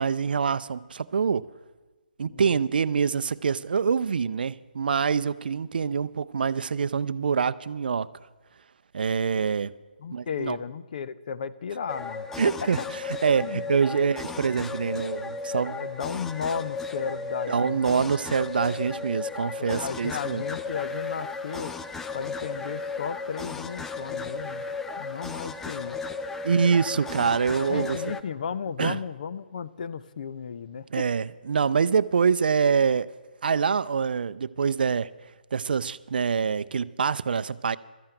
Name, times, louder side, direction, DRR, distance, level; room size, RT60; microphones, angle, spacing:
voice 1, 0.0-1.5 2.2-8.1 8.9-9.7 10.1-10.6 12.4-15.9 17.5-20.4 26.4-28.0 28.8-29.0 30.9-33.1 33.4-35.1 35.5-37.8, right 6 dB, 65° right, 0.5 m, -25 dB
voice 2, 10.0-12.9 13.4-13.7 14.0-14.2 15.8-17.8 19.6-21.7 22.1-24.7 25.0-26.0 27.7-31.1, left 6 dB, 50° left, 0.6 m, -34 dB
sound 1, 11.9-28.2, left 4 dB, 5° left, 0.3 m, -35 dB
12.5 x 8.9 x 7.7 m
hypercardioid pair, 150°, 5 cm